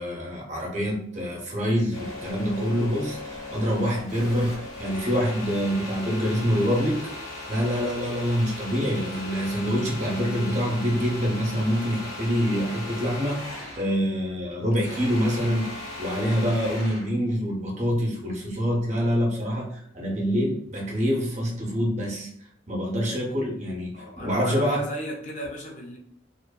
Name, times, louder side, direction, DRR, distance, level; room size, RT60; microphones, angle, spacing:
voice 1, 0.0-7.1 7.5-22.3 22.7-24.8, equal, 35° right, -2 dB, 0.7 m, -26 dB
sound 1, 1.9-13.9 14.3-17.1, left 2 dB, 75° left, 1.3 m, -38 dB
voice 2, 23.9-26.0, equal, 40° left, -1 dB, 0.4 m, -35 dB
2.6 x 2.5 x 2.2 m, 0.69 s
head